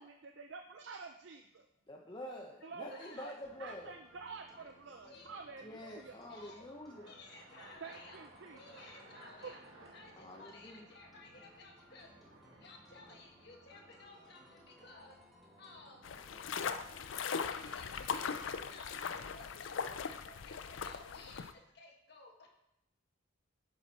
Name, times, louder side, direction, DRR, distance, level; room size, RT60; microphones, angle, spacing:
voice 1, 0.0-1.7 2.6-3.3 3.6-6.2 7.8-8.6 9.4-9.5, right 4 dB, 60° right, 5 dB, 0.5 m, -49 dB
sound 1, 0.6-1.1 4.9-19.5, right 2 dB, 80° right, 1.1 m, -62 dB
voice 2, 1.9-4.0 5.6-7.1 10.2-10.8, left 1 dB, 25° left, -1 dB, 0.7 m, -47 dB
voice 3, 2.6-3.4 4.5-4.7 5.0-5.3 6.3-6.6 7.1-8.2 8.5-9.6 9.9-12.1 12.5-15.2 15.6-16.1 16.6-22.5, left 3 dB, 55° left, 0 dB, 1.5 m, -56 dB
sound 2, 3.4-17.1, equal, ahead, 1.4 m, -62 dB
sound 3, 16.0-21.5, left 6 dB, 70° left, 0.5 m, -39 dB
7.3 x 5.9 x 4.1 m, 0.83 s
head